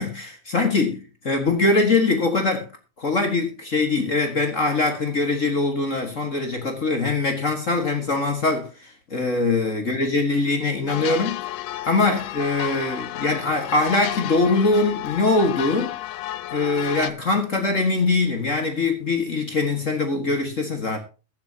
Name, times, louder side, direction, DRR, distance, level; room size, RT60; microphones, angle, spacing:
voice 1, 0.0-2.7 3.0-11.4 11.8-15.9 16.5-21.0, left 3 dB, 40° left, 1.2 m, -22 dB
sound 1, 10.9-17.1, left 15 dB, 80° left, 1.6 m, -32 dB
22.0 x 7.3 x 2.8 m
omnidirectional pair, 3.7 m